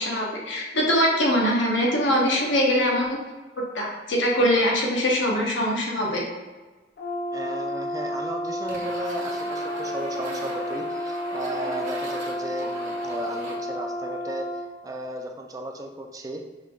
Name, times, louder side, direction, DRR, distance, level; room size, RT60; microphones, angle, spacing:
voice 1, 0.0-3.1 3.7-6.2, equal, 90° left, -2 dB, 1.1 m, -22 dB
Brass instrument, 7.0-14.7, left 1 dB, 55° left, 0.6 m, -31 dB
voice 2, 7.3-14.5 14.8-16.4, right 1 dB, 20° right, 2 dB, 0.4 m, -35 dB
sound 1, 8.7-13.6, right 2 dB, 40° right, 1.0 m, -39 dB
5.7 x 3.3 x 2.4 m, 1.3 s
head